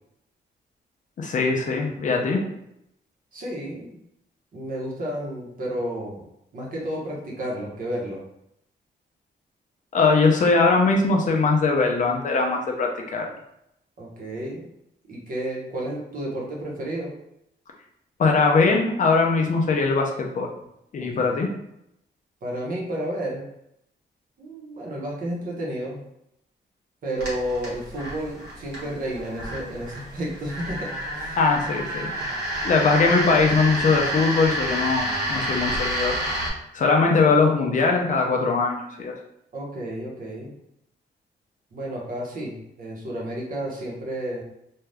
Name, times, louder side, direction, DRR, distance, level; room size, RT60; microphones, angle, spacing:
voice 1, 1.2-2.4 9.9-13.3 18.2-20.5 20.9-21.5 31.4-32.1 32.6-36.2 36.7-39.2, left 4 dB, 45° left, 1 dB, 0.5 m, -21 dB
voice 2, 3.3-4.0 4.5-6.2 6.5-8.2 14.0-14.6 15.1-17.1 21.0-21.4 22.4-23.5 24.4-26.0 27.0-30.9 31.1-31.4 39.5-40.6 41.7-44.4, right 1 dB, 50° right, -3 dB, 0.9 m, -31 dB
sound 1, 27.2-36.5, right 1 dB, 65° right, 1.1 m, -29 dB
2.6 x 2.3 x 3.3 m, 0.80 s
wide cardioid pair, 165°, 19 cm